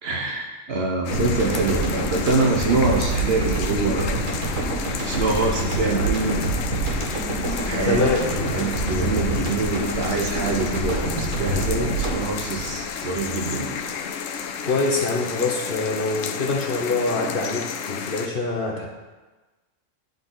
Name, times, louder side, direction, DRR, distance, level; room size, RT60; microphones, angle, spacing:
voice 1, 0.0-4.2 5.1-6.4 7.6-13.9, right 3 dB, 55° right, 1 dB, 1.0 m, -25 dB
sound 1, 1.0-18.3, left 7 dB, 85° left, 1.0 m, -32 dB
sound 2, 1.1-13.6, right 1 dB, 90° right, 1.9 m, -27 dB
voice 2, 7.9-8.2 14.6-18.9, left 3 dB, 50° left, 0 dB, 1.0 m, -24 dB
10.5 x 4.0 x 3.9 m, 1.2 s
omnidirectional pair, 1.3 m